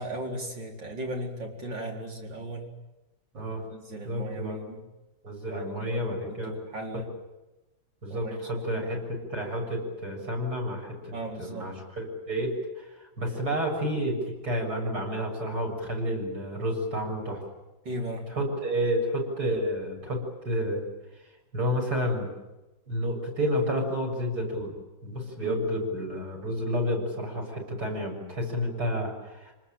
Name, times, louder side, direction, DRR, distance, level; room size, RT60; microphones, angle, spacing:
voice 1, 0.0-2.6 3.3-4.8 5.5-7.1 8.1-8.9 11.1-11.7 17.8-18.3 25.4-25.6, right 1 dB, 70° right, 1 dB, 5.0 m, -37 dB
voice 2, 4.1-4.6 5.2-6.5 6.9-7.0 8.0-11.1 11.4-17.4 18.4-20.8 21.5-22.3 22.9-24.7 25.0-29.5, equal, 55° right, 1 dB, 7.8 m, -30 dB
28.0 x 20.0 x 9.1 m, 1.0 s
omnidirectional pair, 2.1 m